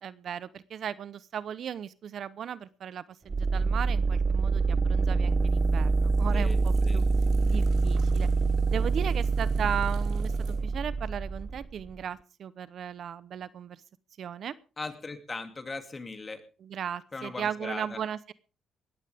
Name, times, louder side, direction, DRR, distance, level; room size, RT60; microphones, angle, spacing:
voice 1, 0.0-7.0 7.4-8.3 8.7-13.8 14.2-14.6 16.6-18.3, right 8 dB, 60° right, 17 dB, 0.8 m, -36 dB
sound 1, 3.3-12.0, right 4 dB, 30° right, 0.7 m, -26 dB
sound 2, 5.2-10.6, right 7 dB, 85° right, 5.3 m, -57 dB
voice 2, 6.3-7.0 9.5-9.7 14.8-16.4 17.1-18.0, left 3 dB, 30° left, 7 dB, 2.6 m, -39 dB
20.0 x 14.5 x 3.6 m, 0.34 s
cardioid pair, 90°, 0 cm